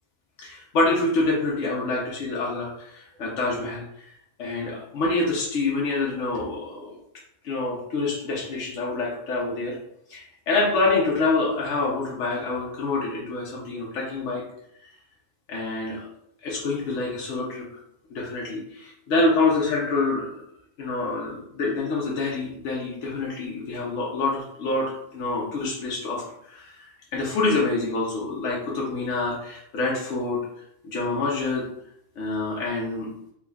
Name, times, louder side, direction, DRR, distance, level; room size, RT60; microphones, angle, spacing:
voice 1, 0.4-4.1 4.4-7.0 7.4-9.8 10.1-14.4 14.8-14.9 15.5-16.1 16.4-17.7 18.1-20.4 20.8-30.4 30.8-31.7 32.2-33.1, left 3 dB, 75° left, -4 dB, 1.1 m, -26 dB
3.5 x 2.2 x 3.4 m, 0.75 s
omnidirectional pair, 1.3 m